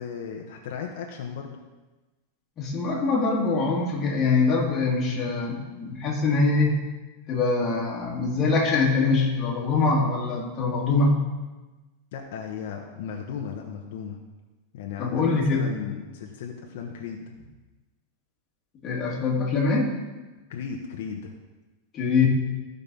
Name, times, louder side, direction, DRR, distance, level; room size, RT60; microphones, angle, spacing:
voice 1, 0.0-1.6 12.1-14.2 14.7-17.3 20.5-21.3, left 6 dB, 60° left, 1 dB, 1.1 m, -36 dB
voice 2, 2.6-6.7 7.3-11.2 15.0-15.6 18.8-19.9 21.9-22.3, left 3 dB, 25° left, -3 dB, 2.1 m, -23 dB
14.5 x 5.4 x 5.4 m, 1.2 s
supercardioid pair, 170°, 0 cm